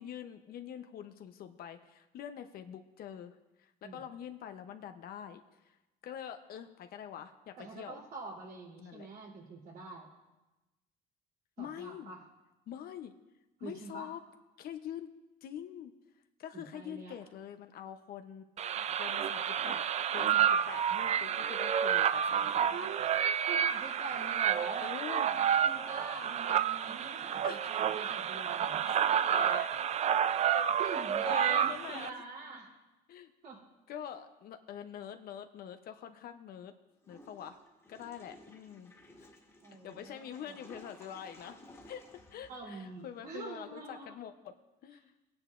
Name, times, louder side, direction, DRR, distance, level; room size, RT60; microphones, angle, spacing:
voice 1, 0.0-5.8 6.0-8.0 8.8-9.1 11.6-12.1 12.7-13.1 13.6-14.2 14.6-15.1 15.4-15.9 16.4-18.5 18.9-19.8 20.1-22.7 24.8-25.3 27.4-27.8 28.9-29.7 30.5-30.9 31.2-32.2 33.1-33.3 33.9-36.7 37.1-37.6 37.9-39.3 39.8-41.6 41.9-44.5 44.8-45.1, left 9 dB, 65° left, 8 dB, 0.7 m, -45 dB
voice 2, 7.6-10.1 11.6-12.2 13.6-14.1 16.5-17.1 22.7-23.1 23.5-28.8 30.8-32.7 33.4-33.6 39.6-40.6 42.5-44.1, right 4 dB, 65° right, -2 dB, 3.2 m, -45 dB
sound 1, 18.6-32.1, right 9 dB, 40° right, 0.4 m, -30 dB
Water / Toilet flush, 37.0-43.2, left 1 dB, 15° left, 1.8 m, -56 dB
18.0 x 9.7 x 2.5 m, 1.0 s
cardioid pair, 110°, 17 cm